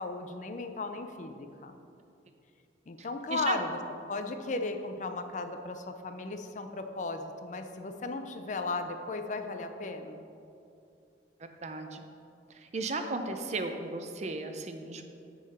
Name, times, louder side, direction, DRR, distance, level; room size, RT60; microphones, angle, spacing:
voice 1, 0.0-1.7 2.9-3.8 4.1-10.3, left 3 dB, 45° left, 7 dB, 0.4 m, -36 dB
voice 2, 11.6-12.0 12.7-15.0, right 3 dB, 40° right, 6 dB, 0.5 m, -34 dB
9.0 x 3.9 x 5.6 m, 2.6 s
head